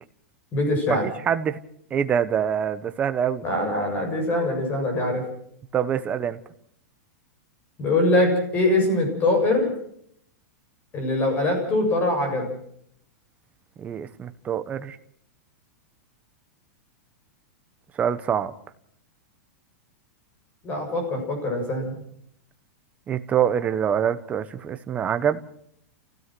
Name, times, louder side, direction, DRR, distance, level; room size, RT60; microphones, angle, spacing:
voice 1, 0.5-1.1 3.4-5.2 7.8-9.7 10.9-12.5 20.6-22.0, left 2 dB, 20° left, 3 dB, 7.5 m, -23 dB
voice 2, 1.3-1.6 1.9-3.4 5.7-6.4 13.8-15.0 18.0-18.5 23.1-25.4, right 8 dB, 15° right, 10 dB, 1.1 m, -25 dB
29.0 x 16.5 x 6.1 m, 0.68 s
supercardioid pair, 165°, 9 cm